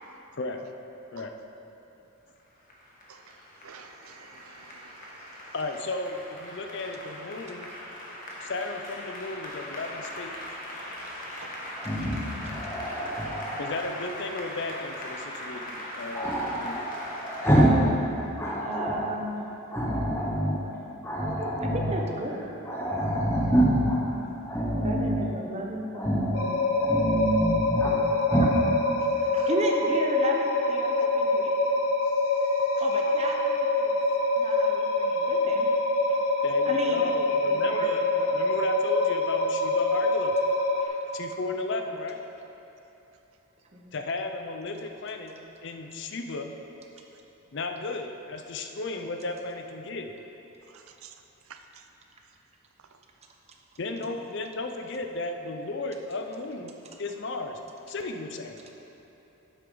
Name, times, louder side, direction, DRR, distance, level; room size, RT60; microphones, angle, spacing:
Applause, 2.4-17.7, left 1 dB, 40° left, 1.4 m, -40 dB
voice 1, 3.6-4.9 5.3-5.4 8.2-8.5 32.5-32.6 51.0-51.1 51.5-51.6, right 7 dB, 75° right, 7 dB, 0.6 m, -49 dB
voice 2, 5.5-7.7 8.4-10.3 13.6-16.8 36.4-40.4 41.1-42.2 43.9-45.3 45.6-46.5 47.5-50.1 53.8-56.7 57.0-57.6 57.9-58.6, left 3 dB, 55° left, 5 dB, 0.6 m, -34 dB
Growling, 11.8-13.8 16.1-17.9 18.2-19.1 19.7-20.6 21.0-22.0 22.4-22.5 22.7-24.0 24.5-25.2 26.0-26.4 26.7-28.0 28.3-28.6, right 1 dB, 10° left, 1.0 m, -26 dB
voice 3, 18.1-19.5 19.9-20.3 21.2-22.4 24.8-26.7 28.3-28.5 29.1-31.6 32.8-34.0 34.4-35.7 36.1-36.2 36.7-37.9 38.2-38.5 40.8-41.1 43.7-43.9, right 1 dB, 30° right, 0 dB, 0.8 m, -35 dB
sound 1, 26.3-40.9, left 2 dB, 75° left, 0.9 m, -25 dB
10.5 x 8.0 x 3.9 m, 3.0 s
head